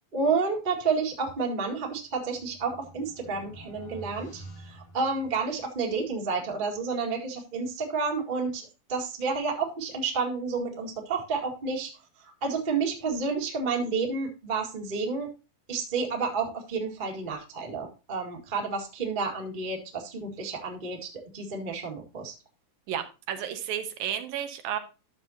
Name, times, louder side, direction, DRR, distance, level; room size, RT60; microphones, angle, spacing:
voice 1, 0.1-11.9 12.2-15.3 15.7-22.3, right 4 dB, 20° right, 1 dB, 1.3 m, -30 dB
sound 1, 1.8-5.8, right 1 dB, 80° left, 4.5 m, -48 dB
voice 2, 22.9-24.8, right 10 dB, 75° right, 7 dB, 2.8 m, -32 dB
12.0 x 7.0 x 2.8 m, 0.30 s
omnidirectional pair, 4.1 m